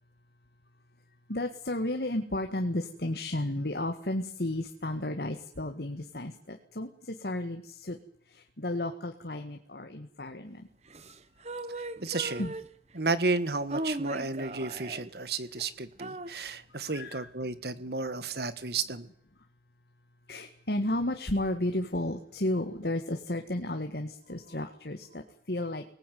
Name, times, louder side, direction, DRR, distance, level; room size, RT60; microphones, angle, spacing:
voice 1, 1.3-8.0 8.3-10.7 12.4-12.5 16.9-17.3 20.3-25.8, left 1 dB, 60° left, 6 dB, 1.9 m, -33 dB
sound 1, 10.9-13.0 13.5-15.2 15.6-15.7 16.0-16.4, right 1 dB, 40° right, 1.2 m, -38 dB
voice 2, 12.0-12.5 12.9-19.1, right 3 dB, 60° right, 14 dB, 1.7 m, -32 dB
24.0 x 19.5 x 9.4 m, 0.68 s
head